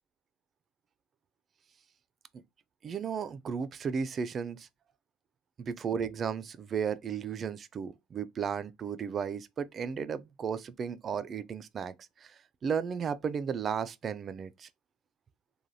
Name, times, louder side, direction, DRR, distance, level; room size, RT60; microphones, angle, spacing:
voice 1, 2.8-4.7 5.6-11.9 12.2-12.3 12.6-14.7, right 6 dB, 40° right, 0.3 m, -34 dB
3.2 x 2.2 x 2.5 m
supercardioid pair, 90°, 0 cm